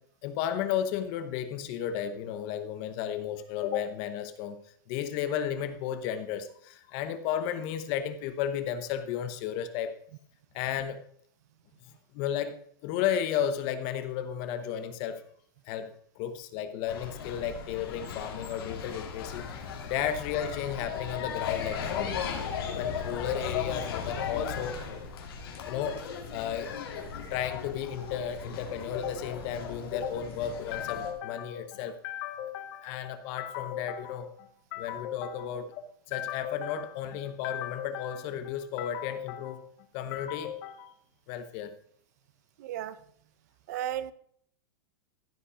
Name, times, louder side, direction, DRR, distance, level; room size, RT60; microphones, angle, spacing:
voice 1, 0.2-4.6 4.9-10.0 10.5-11.0 12.1-15.2 15.7-19.4 19.8-22.3 22.7-24.8 25.7-26.0 26.3-26.7 27.1-40.9 41.3-41.7, left 9 dB, 35° left, 10 dB, 0.9 m, -33 dB
sound 1, 16.9-31.1, left 7 dB, 85° left, 3.0 m, -37 dB
voice 2, 42.6-42.9 43.7-44.1, right 11 dB, 45° right, 15 dB, 0.6 m, -34 dB
15.0 x 5.5 x 5.0 m, 0.63 s
supercardioid pair, 175°, 12 cm